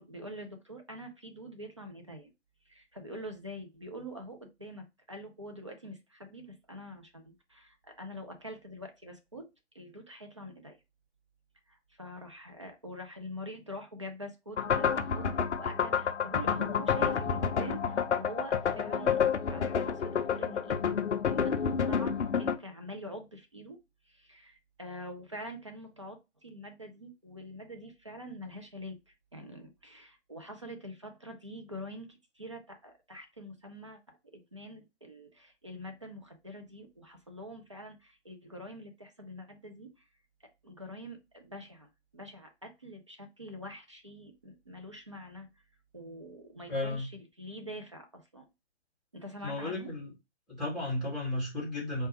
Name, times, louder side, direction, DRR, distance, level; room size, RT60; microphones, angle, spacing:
voice 1, 0.0-2.3 2.7-9.5 9.7-10.8 11.7-19.2 19.5-21.0 21.3-23.8 24.1-40.0 40.6-45.5 45.9-48.5 49.1-49.9, equal, 25° right, 0.4 m, -45 dB
sound 1, 14.6-22.6, left 7 dB, 75° left, 0.5 m, -29 dB
voice 2, 46.7-47.1 49.4-50.1 50.5-52.1, left 2 dB, ahead, 0.8 m, -33 dB
4.3 x 2.3 x 2.8 m
figure-of-eight pair, 140°, 35 cm